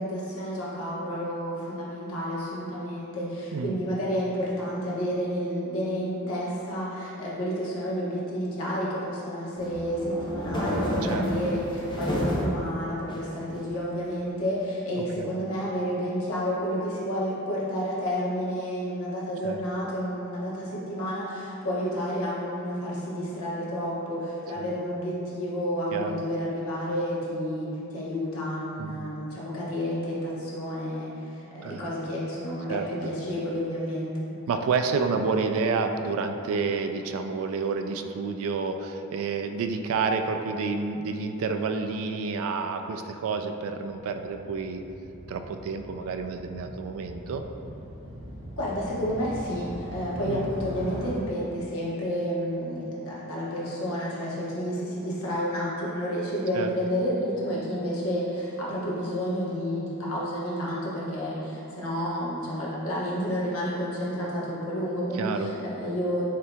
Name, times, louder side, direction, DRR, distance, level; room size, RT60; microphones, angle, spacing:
voice 1, 0.0-34.2 48.6-66.3, equal, 65° left, -6 dB, 1.0 m, -30 dB
sound 1, 9.5-12.6 13.1-13.9, equal, 20° left, 0.6 m, -30 dB
voice 2, 25.9-26.2 28.8-29.0 31.6-31.8 32.7-32.9 34.5-44.8 45.3-47.4 50.2-50.5 56.5-56.7 65.1-65.5, right 4 dB, 65° right, 7 dB, 0.3 m, -29 dB
Motorcycle, 43.6-51.1, equal, 30° right, 1.0 m, -41 dB
7.4 x 2.8 x 2.3 m, 2.8 s
head